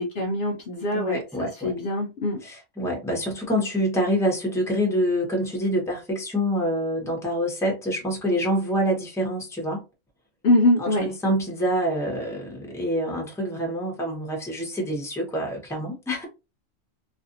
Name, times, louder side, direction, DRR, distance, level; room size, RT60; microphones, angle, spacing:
voice 1, 0.0-2.4 10.4-11.1, left 1 dB, 60° left, 0.8 m, -23 dB
voice 2, 0.9-1.7 2.4-9.8 10.8-16.2, equal, 5° left, 0.8 m, -26 dB
2.6 x 2.4 x 2.6 m
omnidirectional pair, 1.3 m